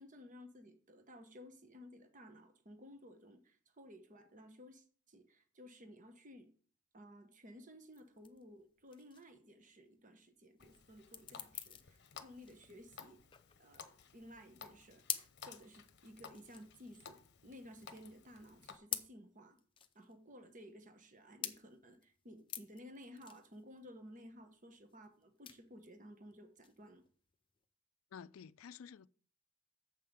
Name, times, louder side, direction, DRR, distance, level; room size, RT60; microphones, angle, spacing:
voice 1, 0.0-6.5 6.9-13.2 13.6-19.6 19.9-27.0, equal, 35° right, 1.1 m, -56 dB
sound 1, 7.9-27.6, left 9 dB, 25° left, 0.6 m, -49 dB
Water tap faucet, 10.6-18.8, left 7 dB, 55° left, 0.9 m, -57 dB
voice 2, 28.1-29.1, left 7 dB, 70° left, 0.4 m, -51 dB
7.4 x 5.7 x 6.5 m
head